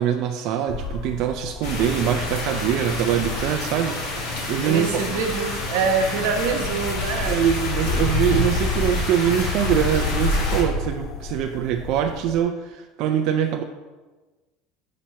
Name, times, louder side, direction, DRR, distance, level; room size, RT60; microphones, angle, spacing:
voice 1, 0.0-4.0 4.5-4.9 7.2-13.6, right 9 dB, 50° right, 4 dB, 0.3 m, -23 dB
sound 1, 0.7-12.4, left 3 dB, 35° left, 0.3 m, -29 dB
sound 2, 1.6-10.6, left 2 dB, 75° left, 1.7 m, -29 dB
voice 2, 4.6-7.4, right 5 dB, 85° right, 4 dB, 0.8 m, -25 dB
7.3 x 2.9 x 5.5 m, 1.2 s
cardioid pair, 165°, 0 cm